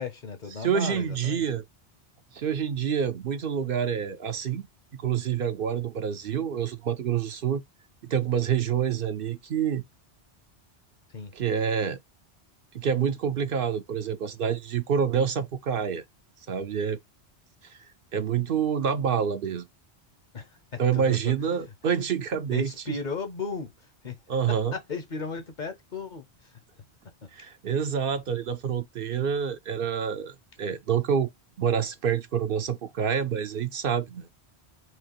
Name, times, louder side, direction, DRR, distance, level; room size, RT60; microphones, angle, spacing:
voice 1, 0.0-1.4 11.1-11.3 20.3-21.6 22.5-23.7 24.0-24.2 24.5-26.6 27.2-27.3, left 4 dB, 50° left, 0.9 m, -36 dB
voice 2, 0.6-1.6 2.3-4.6 5.0-7.6 8.1-9.8 11.3-12.0 12.7-16.0 16.5-17.0 17.6-17.8 18.1-19.7 20.8-23.0 24.3-24.7 27.3-31.3 31.6-34.3, right 7 dB, 60° right, 0.7 m, -27 dB
4.6 x 2.8 x 3.0 m
omnidirectional pair, 1.1 m